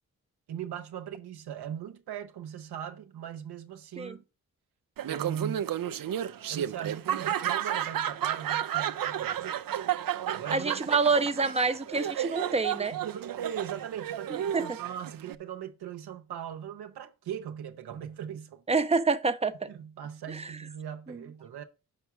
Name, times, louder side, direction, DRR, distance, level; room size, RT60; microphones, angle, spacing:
voice 1, 0.5-4.2 5.1-5.7 6.5-9.6 10.3-10.8 12.9-18.6 19.7-21.6, right 9 dB, 85° right, 0.9 m, -39 dB
Laughter, 5.0-15.3, right 10 dB, 65° right, 0.6 m, -32 dB
voice 2, 10.5-12.9 14.5-14.6 18.7-19.7 20.3-20.5 21.1-21.2, right 4 dB, 15° right, 0.9 m, -27 dB
6.4 x 4.5 x 6.2 m
supercardioid pair, 40°, 38 cm